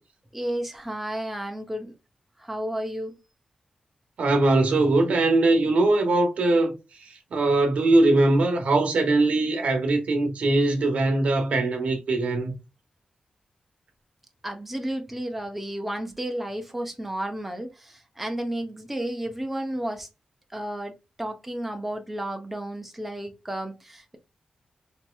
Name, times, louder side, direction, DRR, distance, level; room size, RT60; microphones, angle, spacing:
voice 1, 0.3-1.9 2.4-3.2 14.4-20.1 20.5-24.2, right 1 dB, 5° right, 0.6 m, -32 dB
voice 2, 4.2-6.7 7.3-12.5, right 2 dB, 85° right, 1.0 m, -21 dB
4.2 x 2.9 x 2.2 m
wide cardioid pair, 175°, 2 cm